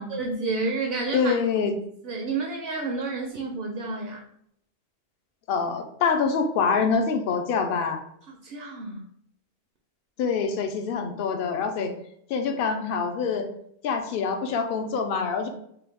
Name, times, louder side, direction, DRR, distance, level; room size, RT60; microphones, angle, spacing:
voice 1, 0.0-1.3 2.0-4.2 8.4-9.0, right 3 dB, 65° right, 2 dB, 0.7 m, -30 dB
voice 2, 1.1-1.7 5.5-8.0 10.2-11.9 12.3-13.5 13.8-15.5, left 5 dB, 60° left, 5 dB, 0.7 m, -25 dB
3.8 x 2.2 x 3.4 m, 0.71 s
omnidirectional pair, 1.2 m